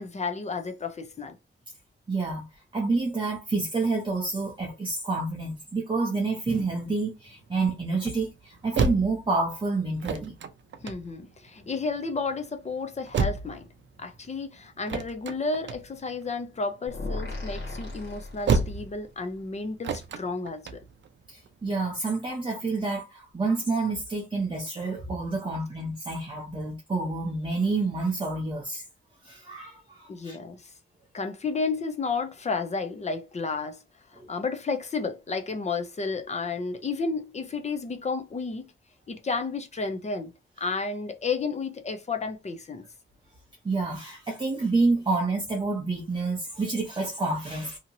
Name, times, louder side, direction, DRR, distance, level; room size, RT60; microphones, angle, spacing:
voice 1, 0.0-1.4 10.8-13.7 14.0-20.8 30.1-30.7 31.1-33.8 34.1-38.7 39.1-40.3 40.6-42.8, left 4 dB, 35° left, 0.5 m, -32 dB
voice 2, 2.1-2.5 2.7-10.3 21.3-28.9 29.2-30.4 34.1-34.3 43.6-47.8, right 3 dB, 25° right, 0.7 m, -28 dB
sound 1, 6.4-22.0, right 4 dB, 65° right, 0.4 m, -33 dB
sound 2, 16.9-19.0, left 2 dB, 60° left, 1.5 m, -36 dB
2.8 x 2.8 x 2.6 m
wide cardioid pair, 175°, 21 cm